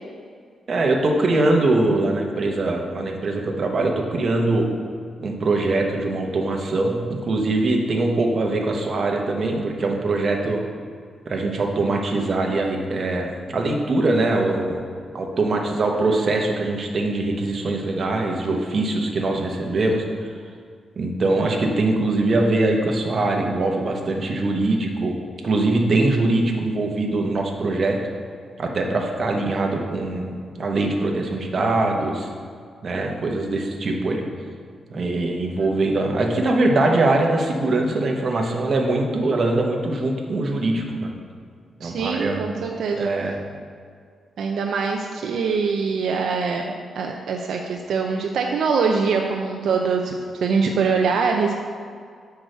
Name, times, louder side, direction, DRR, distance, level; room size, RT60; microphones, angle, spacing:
voice 1, 0.7-4.7 5.2-10.6 11.3-14.8 15.1-20.4 21.0-25.1 25.4-28.0 28.6-32.3 32.8-34.2 34.9-41.1 41.8-42.4 43.0-43.3, right 2 dB, 45° right, 1 dB, 1.0 m, -22 dB
voice 2, 41.8-43.1 44.4-46.6 47.0-51.5, right 5 dB, 75° right, 2 dB, 0.5 m, -23 dB
6.1 x 4.7 x 6.6 m, 2.1 s
cardioid pair, 130°, 0 cm